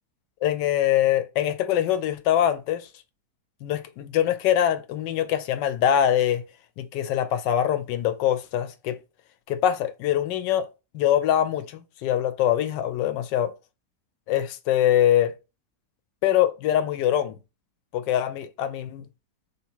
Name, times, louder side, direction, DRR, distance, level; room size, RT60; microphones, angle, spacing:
voice 1, 0.4-2.9 3.6-6.4 6.8-9.0 9.5-10.7 10.9-13.5 14.3-15.3 16.2-17.4 17.9-19.1, left 11 dB, 80° left, 1.2 m, -23 dB
3.4 x 2.9 x 4.3 m
omnidirectional pair, 1.9 m